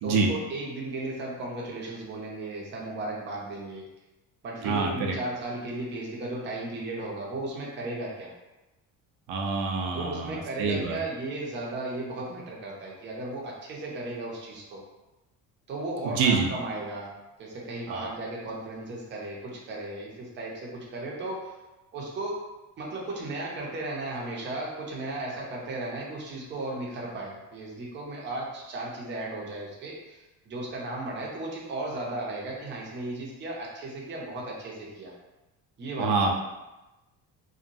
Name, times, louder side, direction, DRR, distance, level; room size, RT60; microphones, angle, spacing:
voice 1, 0.0-3.9 4.4-8.3 9.9-14.8 15.7-17.1 17.4-21.5 21.9-22.4 22.8-35.1 35.8-36.3, right 2 dB, 30° right, -3 dB, 0.5 m, -35 dB
voice 2, 4.6-5.1 9.3-11.0 16.2-16.5 17.9-18.1 36.0-36.3, right 4 dB, 85° right, 1 dB, 0.6 m, -26 dB
2.9 x 2.2 x 2.5 m, 1.0 s
cardioid pair, 160°, 39 cm